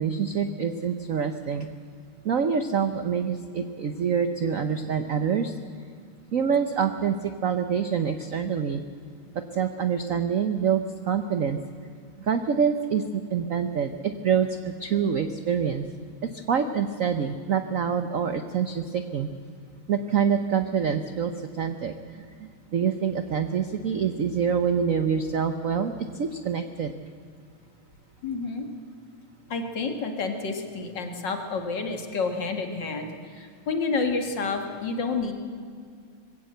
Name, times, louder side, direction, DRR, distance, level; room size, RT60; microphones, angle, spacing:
voice 1, 0.0-1.7 2.2-5.5 6.3-8.8 9.5-11.6 12.2-14.5 14.8-15.8 16.2-19.3 19.9-21.9 22.7-26.9, right 7 dB, 60° right, 9 dB, 0.8 m, -26 dB
voice 2, 28.2-28.7 29.5-35.3, left 4 dB, 55° left, 5 dB, 2.4 m, -29 dB
21.0 x 16.5 x 7.8 m, 2.2 s
omnidirectional pair, 2.4 m